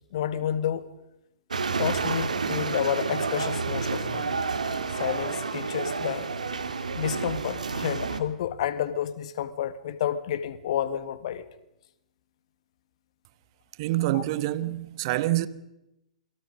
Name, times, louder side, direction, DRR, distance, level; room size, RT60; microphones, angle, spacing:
voice 1, 0.1-0.9 1.8-4.4 4.9-6.3 7.0-11.5 14.1-14.2, left 10 dB, 50° left, 1.7 m, -30 dB
sound 1, 1.5-8.2, right 4 dB, 75° right, 2.2 m, -30 dB
voice 2, 13.8-15.5, right 16 dB, 40° right, 1.3 m, -26 dB
29.0 x 23.5 x 5.3 m
figure-of-eight pair, 115°, 4 cm